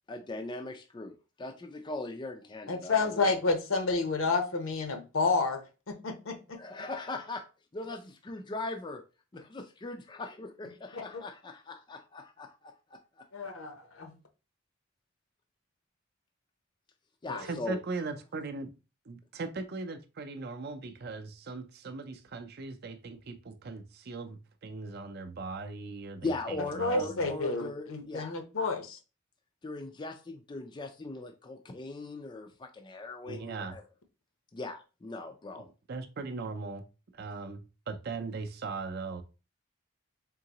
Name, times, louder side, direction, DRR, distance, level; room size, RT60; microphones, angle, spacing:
voice 1, 0.1-3.4 6.5-7.4 7.7-9.0 9.3-13.3 17.2-17.8 26.2-28.4 29.6-33.8 34.5-35.7, left 2 dB, 20° left, 0.3 m, -40 dB
voice 2, 2.7-5.6 5.9-6.6 10.9-11.0 13.3-14.1 17.3-17.4 26.8-29.0, left 3 dB, 70° left, 0.8 m, -30 dB
voice 3, 17.4-18.7 19.1-27.3 33.3-33.8 35.6-36.9 37.1-39.2, right 3 dB, 45° right, 0.5 m, -39 dB
3.8 x 3.6 x 2.9 m
head